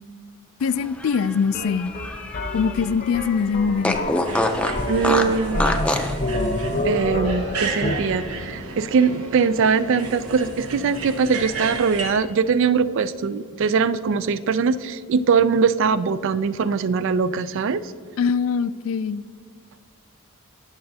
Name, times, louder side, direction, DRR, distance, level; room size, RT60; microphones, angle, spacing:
voice 1, 0.6-1.9 2.5-4.1 18.2-19.2, left 6 dB, 65° left, 16 dB, 0.3 m, -23 dB
Fart, 0.8-2.9 3.2-3.3 3.8-6.2, left 1 dB, 5° left, 0.5 m, -25 dB
sound 1, 1.5-7.9, left 1 dB, 40° left, 0.7 m, -28 dB
sound 2, 4.3-12.1, right 4 dB, 90° right, 1.1 m, -33 dB
voice 2, 4.9-5.8 6.8-17.8, right 5 dB, 60° right, 15 dB, 0.3 m, -21 dB
20.0 x 6.8 x 2.7 m, 2.1 s
head